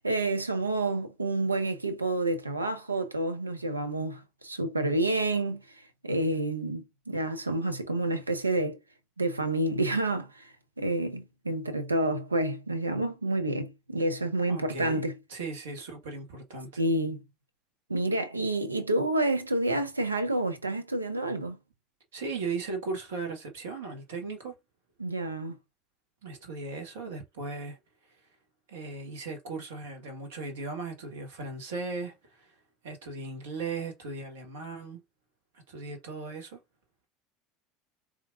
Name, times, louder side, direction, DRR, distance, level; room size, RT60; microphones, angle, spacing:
voice 1, 0.0-5.6 6.0-8.8 9.2-15.1 16.8-17.2 17.9-21.6 25.0-25.6, right 2 dB, 85° right, 0.5 m, -29 dB
voice 2, 14.5-15.0 15.3-16.8 22.1-24.6 26.2-27.8 28.0-28.3 28.7-32.6 32.8-35.0 35.5-36.6, right 4 dB, 70° right, 1.1 m, -37 dB
4.4 x 2.4 x 2.5 m
figure-of-eight pair, 70°, 0 cm